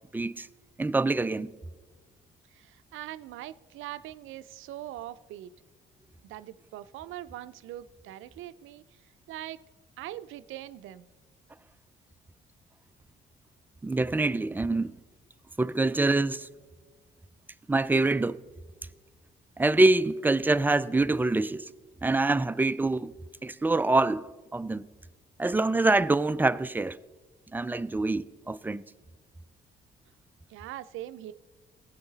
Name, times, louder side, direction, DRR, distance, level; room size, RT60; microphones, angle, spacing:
voice 1, 0.1-0.5 0.8-1.5 13.8-15.0 15.6-16.5 17.7-18.4 19.6-21.7 22.0-23.1 23.4-24.9 25.4-27.0 27.5-28.8, right 2 dB, 10° right, 0.3 m, -25 dB
voice 2, 2.5-5.6 6.2-8.8 9.3-9.6 10.0-11.1 30.5-31.3, right 14 dB, 85° right, 0.5 m, -42 dB
18.5 x 8.1 x 3.9 m
cardioid pair, 90°, 20 cm